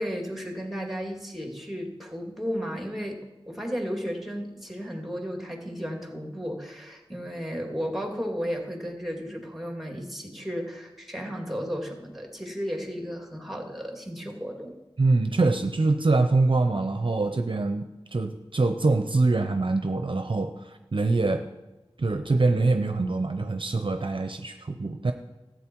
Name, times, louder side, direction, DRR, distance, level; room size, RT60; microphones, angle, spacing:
voice 1, 0.0-14.7, equal, ahead, 2 dB, 2.3 m, -34 dB
voice 2, 15.0-21.4 22.0-25.1, right 3 dB, 50° right, 6 dB, 0.7 m, -24 dB
13.5 x 8.1 x 4.6 m, 1.0 s
wide cardioid pair, 45°, 11 cm